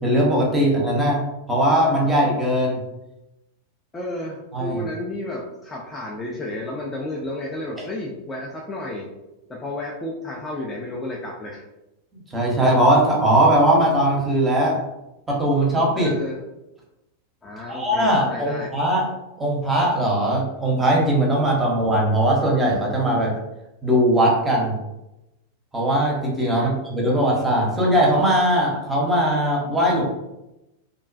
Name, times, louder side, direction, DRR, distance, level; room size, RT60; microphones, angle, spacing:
voice 1, 0.0-1.2 1.5-2.8 4.5-4.8 12.3-14.8 15.3-16.1 17.7-19.0 19.4-23.3 23.8-24.8 25.7-30.0, right 1 dB, 10° right, -3 dB, 0.7 m, -19 dB
voice 2, 3.9-9.1 9.5-11.6 16.0-16.4 17.4-18.7 26.5-26.7, left 1 dB, 15° left, -3 dB, 0.4 m, -32 dB
2.4 x 2.2 x 2.4 m, 0.92 s
figure-of-eight pair, 90°, 0 cm